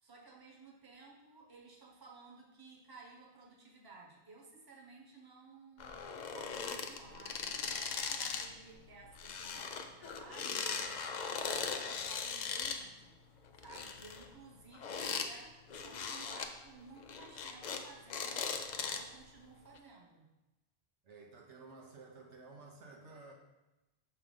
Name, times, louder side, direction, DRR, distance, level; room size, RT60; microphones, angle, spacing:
voice 1, 0.0-13.1 13.6-18.5 18.8-20.3, right 3 dB, 20° right, -2 dB, 1.0 m, -56 dB
sound 1, 5.8-8.5 8.8-12.8 13.5-15.3 15.7-16.5 17.0-17.8 18.1-19.2 19.7-19.8, left 5 dB, 55° left, 0.5 m, -39 dB
voice 2, 21.0-23.3, right 3 dB, 80° right, 0 dB, 1.2 m, -53 dB
6.0 x 3.4 x 5.2 m, 1.0 s
omnidirectional pair, 1.2 m